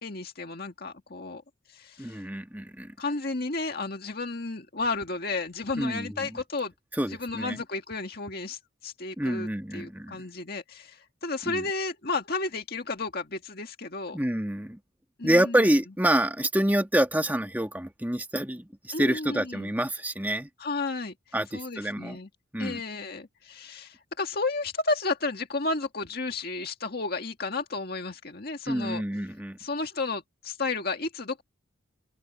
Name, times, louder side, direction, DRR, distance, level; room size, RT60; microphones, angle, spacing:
voice 1, 0.0-1.4 1.7-2.2 3.0-6.7 7.1-14.2 15.2-15.7 18.9-19.7 20.6-21.1 21.5-22.3 22.6-29.0 29.6-31.4, left 3 dB, 50° left, 1.9 m, -32 dB
voice 2, 2.0-2.9 5.8-6.4 7.0-7.6 9.2-10.2 11.5-11.7 14.1-14.8 15.2-20.5 21.3-22.2 22.5-22.8 28.7-29.6, right 1 dB, 10° right, 1.9 m, -27 dB
open air
head